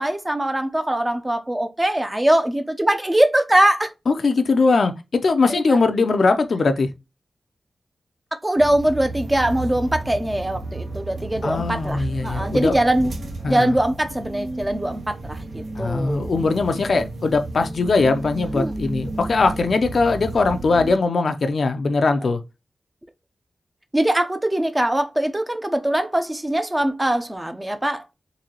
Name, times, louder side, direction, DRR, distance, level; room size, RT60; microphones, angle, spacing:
voice 1, 0.0-3.9 5.5-5.8 8.4-13.1 13.5-16.3 16.9-17.0 18.5-18.7 23.9-28.1, right 1 dB, 15° right, 0.5 m, -22 dB
voice 2, 4.1-6.9 11.4-12.8 13.4-13.7 15.8-22.4, left 3 dB, 60° left, 0.5 m, -20 dB
sound 1, 8.6-20.9, right 2 dB, 75° right, 1.0 m, -33 dB
3.9 x 2.7 x 2.9 m
wide cardioid pair, 110°, 0 cm